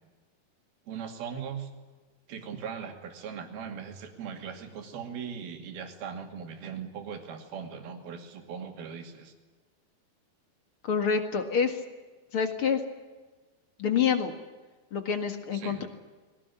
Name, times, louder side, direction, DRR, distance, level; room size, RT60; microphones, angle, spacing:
voice 1, 0.9-1.7 2.3-9.3 15.5-15.8, right 7 dB, 70° right, 5 dB, 4.3 m, -39 dB
voice 2, 10.9-11.8 12.3-12.8 13.8-14.3 14.9-15.9, left 6 dB, 45° left, 7 dB, 1.9 m, -27 dB
22.0 x 18.0 x 9.9 m, 1.3 s
omnidirectional pair, 4.6 m